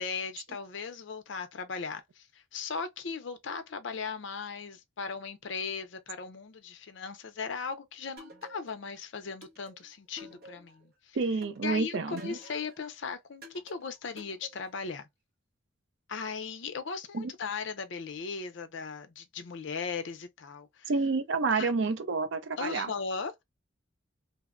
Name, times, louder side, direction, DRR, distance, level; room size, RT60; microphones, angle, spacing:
voice 1, 0.0-11.2 11.6-15.1 16.1-20.9 21.5-21.7 22.6-23.4, left 5 dB, 65° left, 0.5 m, -38 dB
sound 1, 8.2-8.9 9.4-10.9 11.4-12.8 13.4-14.9, left 1 dB, 50° right, 0.8 m, -51 dB
voice 2, 11.1-12.4 17.1-17.3 20.9-22.9, right 4 dB, 65° right, 0.4 m, -29 dB
2.8 x 2.1 x 2.4 m
head